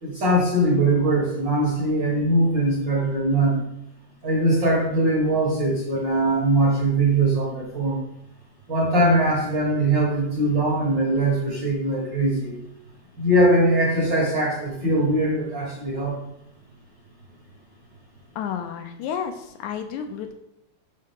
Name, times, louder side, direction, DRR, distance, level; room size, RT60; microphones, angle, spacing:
voice 1, 0.0-3.6 4.2-8.0 8.7-12.5 13.2-16.2, right 1 dB, 50° right, -3 dB, 1.5 m, -21 dB
voice 2, 18.3-20.3, left 8 dB, 80° left, 6 dB, 1.8 m, -31 dB
6.6 x 5.5 x 3.6 m, 0.82 s
omnidirectional pair, 3.5 m